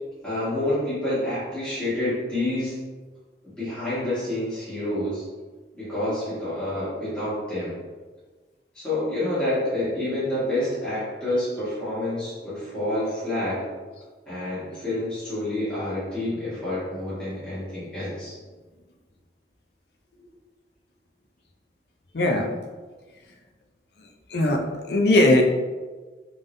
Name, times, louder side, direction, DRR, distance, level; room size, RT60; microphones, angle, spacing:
voice 1, 0.2-2.8 3.4-5.2 5.7-7.8 8.7-13.7 14.3-18.3, left 1 dB, 5° left, -13 dB, 1.5 m, -28 dB
voice 2, 22.1-22.5 24.3-24.6 24.9-25.4, left 1 dB, 65° left, 2 dB, 0.5 m, -19 dB
3.8 x 3.4 x 2.6 m, 1.3 s
head